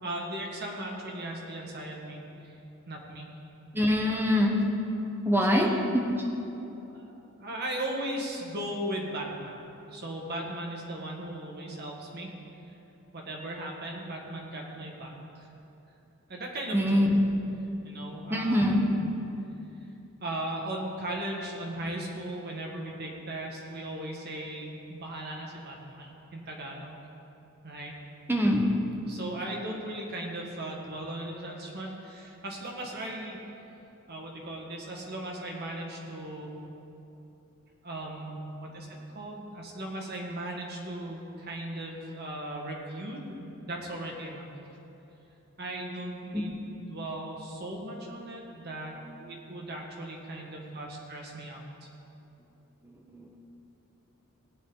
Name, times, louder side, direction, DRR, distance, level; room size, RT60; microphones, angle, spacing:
voice 1, 0.0-2.6 2.9-3.3 5.5-6.0 6.6-9.6 9.9-12.3 13.1-15.5 16.3-17.0 17.8-19.0 20.2-27.0 27.6-27.9 29.1-33.4 34.1-36.6 37.8-43.4 43.6-44.5 45.6-46.5 46.9-48.9 49.2-51.9, right 1 dB, 50° right, -1 dB, 1.8 m, -37 dB
voice 2, 3.7-4.6 5.2-5.7 5.9-6.1 16.7-17.1 18.3-18.8 28.3-28.7 46.3-46.4 53.1-53.4, equal, 10° right, 1 dB, 1.1 m, -24 dB
18.0 x 8.8 x 4.0 m, 2.9 s
head